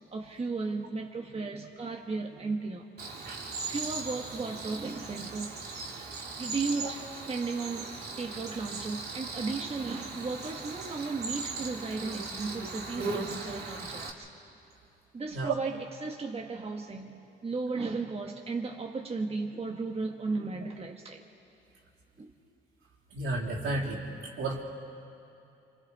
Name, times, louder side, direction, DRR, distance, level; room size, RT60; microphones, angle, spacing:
voice 1, 0.1-2.9 3.7-5.6 6.4-7.9 8.2-14.3 15.1-21.2 22.2-22.3, right 4 dB, 30° right, 1 dB, 1.5 m, -35 dB
Cricket, 3.0-14.1, right 3 dB, 55° right, 2.6 m, -38 dB
voice 2, 23.1-24.0 24.4-24.6, right 2 dB, 80° right, -3 dB, 3.6 m, -31 dB
27.5 x 26.0 x 4.2 m, 2.8 s
cardioid pair, 90°, 20 cm